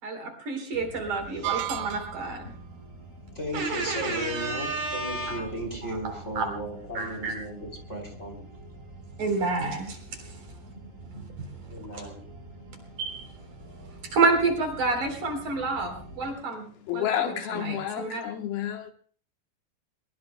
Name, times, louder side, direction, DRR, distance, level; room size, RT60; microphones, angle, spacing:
voice 1, 0.0-2.5 3.5-5.4 5.9-6.5 6.9-7.3 9.2-10.0 11.9-12.1 13.0-13.3 14.1-16.7 16.9-17.1 17.6-18.2, right 3 dB, 50° right, 5.0 m, -29 dB
sound 1, 0.7-16.3, right 2 dB, 20° right, 5.2 m, -46 dB
sound 2, 1.4-2.4, right 15 dB, 75° right, 2.1 m, -32 dB
voice 2, 3.3-8.4 11.1-11.2 11.7-12.3, right 1 dB, 20° left, 3.3 m, -36 dB
voice 3, 16.2-18.9, left 10 dB, 75° left, 2.9 m, -31 dB
22.5 x 22.5 x 2.2 m
omnidirectional pair, 4.7 m